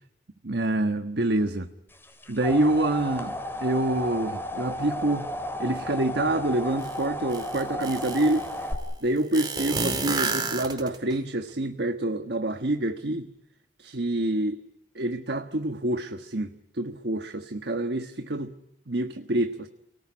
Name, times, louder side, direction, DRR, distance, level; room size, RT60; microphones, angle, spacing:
voice 1, 0.4-1.7 2.3-3.3 3.6-5.3 5.6-8.7 9.0-13.3 13.8-14.6 14.9-18.5 18.9-19.7, right 1 dB, 65° right, 8 dB, 1.3 m, -27 dB
sound 1, 2.0-8.7, left 1 dB, 10° left, 4.0 m, -33 dB
sound 2, 6.8-6.9 7.3-8.4 9.3-11.2, right 4 dB, 25° right, 3.7 m, -29 dB
29.5 x 19.0 x 9.9 m, 0.84 s
head